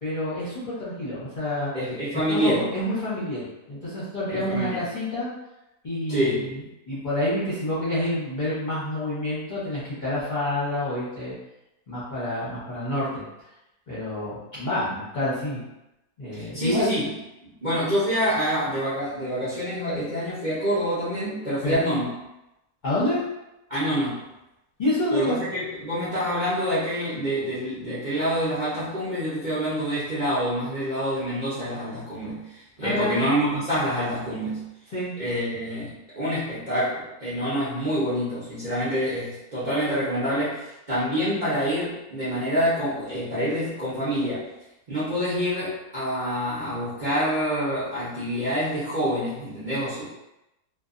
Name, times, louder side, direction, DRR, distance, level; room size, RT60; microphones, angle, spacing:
voice 1, 0.0-1.7 2.3-5.3 5.8-6.5 6.9-11.3 11.9-13.2 13.9-15.6 16.2-16.9 21.6-21.8 22.8-23.2 24.8-25.4 32.8-33.2 34.9-35.1, left 1 dB, 35° left, -11 dB, 0.8 m, -28 dB
voice 2, 1.7-2.7 4.3-4.8 6.1-6.5 16.3-17.1 17.4-22.1 23.7-24.2 25.1-34.6 35.2-44.4 44.9-50.0, equal, 40° right, -11 dB, 0.7 m, -27 dB
2.6 x 2.5 x 2.5 m, 0.92 s
omnidirectional pair, 1.7 m